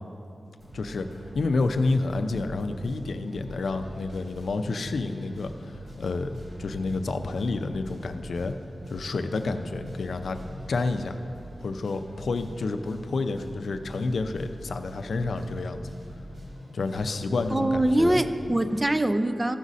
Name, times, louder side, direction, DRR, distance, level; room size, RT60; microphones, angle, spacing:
sound 1, 0.6-18.9, equal, 55° right, 2.1 m, -43 dB
voice 1, 0.7-1.1 1.3-8.5 8.9-10.4 10.7-11.2 11.6-15.9 16.7-18.2, left 3 dB, 70° left, 7 dB, 0.5 m, -29 dB
voice 2, 17.5-19.6, right 1 dB, 15° right, 10 dB, 0.3 m, -23 dB
14.5 x 6.2 x 4.1 m, 2.6 s
wide cardioid pair, 155°, 0 cm